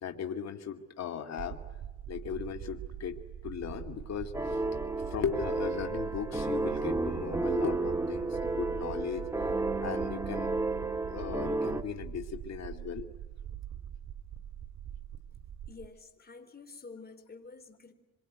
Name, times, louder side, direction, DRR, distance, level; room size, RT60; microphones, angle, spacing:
voice 1, 0.0-1.6 2.1-3.2 3.4-4.6 5.1-9.2 9.8-10.5 11.1-13.1, left 7 dB, 60° left, 5 dB, 2.5 m, -37 dB
sound 1, 1.4-15.9, right 10 dB, 65° right, 2.5 m, -43 dB
sound 2, 4.3-11.8, right 2 dB, 10° right, 1.9 m, -32 dB
voice 2, 15.7-17.9, left 4 dB, 30° left, 9 dB, 4.1 m, -49 dB
26.0 x 24.0 x 9.4 m, 1.1 s
cardioid pair, 90°, 30 cm